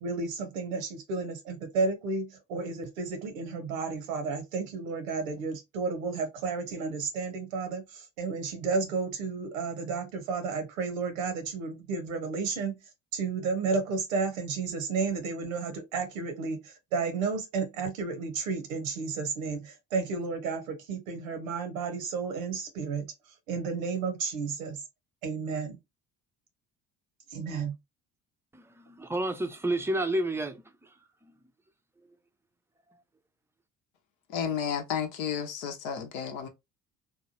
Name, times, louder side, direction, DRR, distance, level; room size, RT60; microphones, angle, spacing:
voice 1, 0.0-12.8 13.1-23.1 23.5-24.8 25.2-25.8 27.3-27.7, right 4 dB, 80° right, 0.8 m, -32 dB
voice 2, 28.5-30.6, right 1 dB, 5° right, 0.5 m, -30 dB
voice 3, 34.3-36.5, left 8 dB, 75° left, 0.8 m, -32 dB
2.9 x 2.2 x 2.7 m
hypercardioid pair, 55°, 39 cm